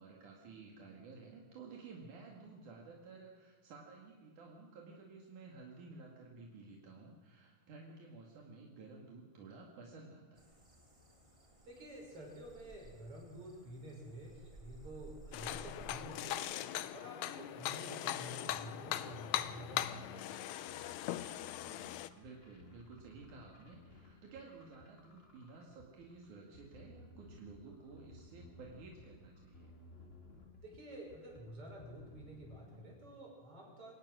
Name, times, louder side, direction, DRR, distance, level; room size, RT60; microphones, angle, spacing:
voice 1, 0.0-10.6 21.6-29.7, right 4 dB, 80° right, -1 dB, 3.6 m, -54 dB
sound 1, 10.3-16.2, right 3 dB, 10° right, 2.3 m, -57 dB
voice 2, 11.7-16.5 16.9-20.3 30.6-34.0, right 1 dB, 45° right, -1 dB, 7.0 m, -50 dB
sound 2, 15.3-22.1, left 12 dB, 75° left, 1.9 m, -40 dB
sound 3, 18.5-32.8, left 2 dB, 20° left, 2.3 m, -59 dB
25.0 x 18.0 x 6.3 m, 1.5 s
omnidirectional pair, 3.5 m